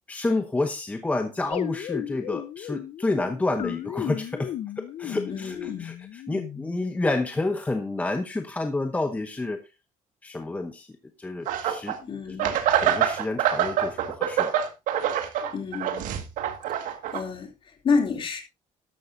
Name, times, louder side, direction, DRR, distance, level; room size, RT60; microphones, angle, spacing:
voice 1, 0.1-9.6 10.2-10.9 11.2-12.0 12.3-12.4 12.8-14.6, left 2 dB, 10° left, 0.9 m, -29 dB
sound 1, 1.5-7.0, left 11 dB, 55° left, 0.8 m, -35 dB
voice 2, 5.2-5.9 12.0-12.5 15.4-16.0 16.8-18.4, left 5 dB, 40° left, 3.0 m, -29 dB
sound 2, 11.5-12.0 12.4-17.2, right 9 dB, 80° right, 1.9 m, -25 dB
13.0 x 11.5 x 2.7 m
cardioid pair, 165°, 13 cm